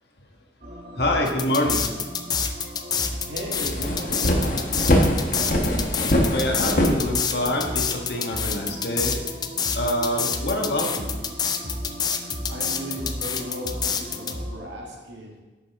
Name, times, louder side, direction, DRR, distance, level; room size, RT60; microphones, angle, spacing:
sound 1, 0.6-14.7, equal, 50° right, 1.4 m, -36 dB
voice 1, 1.0-1.8 6.3-9.2 9.7-11.1, left 1 dB, 65° left, 1 dB, 1.5 m, -26 dB
sound 2, 1.3-14.3, left 7 dB, 25° left, 0.4 m, -27 dB
voice 2, 3.3-5.5 12.5-15.4, equal, 85° right, -1 dB, 2.0 m, -36 dB
sound 3, 3.5-7.7, equal, 50° left, 1.1 m, -23 dB
10.5 x 6.9 x 3.6 m, 1.2 s
head